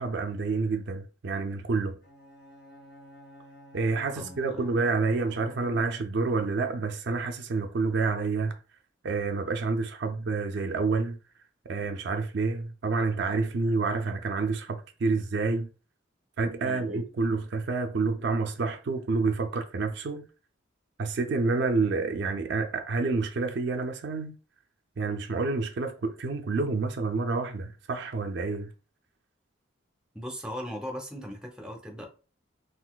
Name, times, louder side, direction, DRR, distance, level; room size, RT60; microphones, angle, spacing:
voice 1, 0.0-2.0 3.7-8.6 9.0-11.2 11.7-15.7 16.4-20.3 21.0-24.3 25.0-28.7, right 4 dB, 60° right, 0.4 m, -28 dB
Bowed string instrument, 2.0-6.2, equal, 45° left, 1.4 m, -51 dB
voice 2, 4.1-4.6 16.6-17.0 30.1-32.1, equal, 5° right, 0.6 m, -38 dB
3.8 x 2.5 x 2.3 m
head